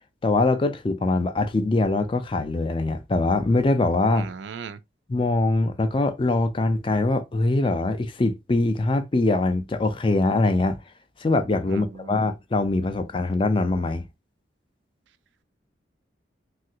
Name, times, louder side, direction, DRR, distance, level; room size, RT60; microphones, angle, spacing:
voice 1, 0.2-4.3 5.1-10.8 11.2-14.0, left 2 dB, 25° left, 0.4 m, -23 dB
voice 2, 4.1-4.8 11.7-12.2, right 6 dB, 70° right, 0.3 m, -38 dB
3.3 x 2.4 x 2.7 m
head